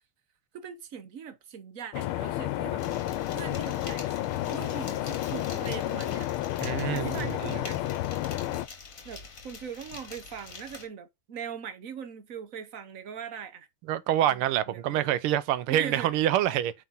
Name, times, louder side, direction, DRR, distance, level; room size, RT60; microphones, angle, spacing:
voice 1, 0.5-2.8 3.3-4.2 4.5-6.3 6.7-7.8 9.0-13.7 14.2-15.1 15.7-16.1, right 7 dB, 55° right, 1.0 m, -41 dB
sound 1, 1.9-8.7, left 14 dB, 90° left, 1.5 m, -31 dB
sound 2, 2.8-10.9, left 4 dB, 40° left, 2.1 m, -45 dB
voice 2, 6.6-7.6 13.9-16.7, right 12 dB, 85° right, 1.6 m, -26 dB
9.1 x 4.4 x 4.0 m
omnidirectional pair, 2.3 m